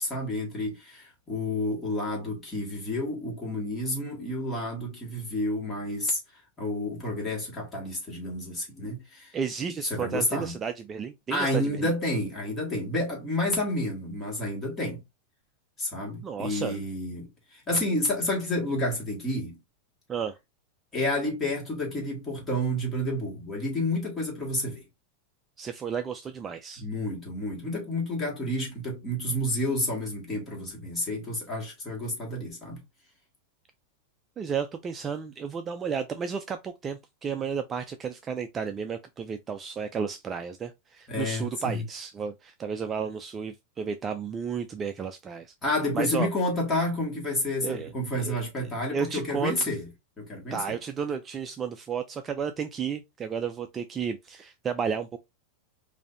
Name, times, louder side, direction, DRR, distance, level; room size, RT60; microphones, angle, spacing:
voice 1, 0.0-6.2 6.6-9.3 9.9-10.6 11.3-15.0 15.8-19.6 20.9-24.8 26.8-32.8 41.1-41.8 45.6-49.9 50.2-50.6, left 1 dB, 15° left, 1.7 m, -30 dB
voice 2, 9.3-11.9 16.2-16.8 20.1-20.4 25.6-26.8 34.4-45.5 45.9-46.3 47.6-47.9 48.2-48.4 48.9-49.7 50.5-55.2, right 6 dB, 20° right, 0.3 m, -32 dB
5.0 x 2.7 x 2.5 m
supercardioid pair, 155°, 0 cm